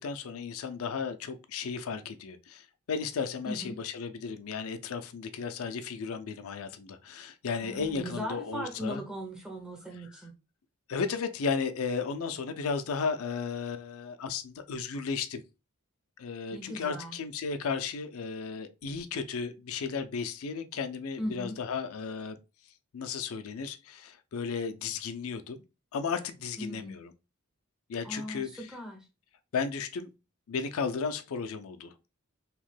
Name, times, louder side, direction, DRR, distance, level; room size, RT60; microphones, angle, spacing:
voice 1, 0.0-9.0 10.9-15.4 16.2-22.4 22.9-25.6 25.9-27.1 27.9-28.7 29.5-30.1 30.5-31.9, left 5 dB, 75° left, 0.4 m, -34 dB
voice 2, 7.6-10.3 16.5-17.2 21.2-21.6 26.6-27.0 28.0-29.1, equal, 5° right, 0.4 m, -38 dB
2.9 x 2.1 x 3.1 m
head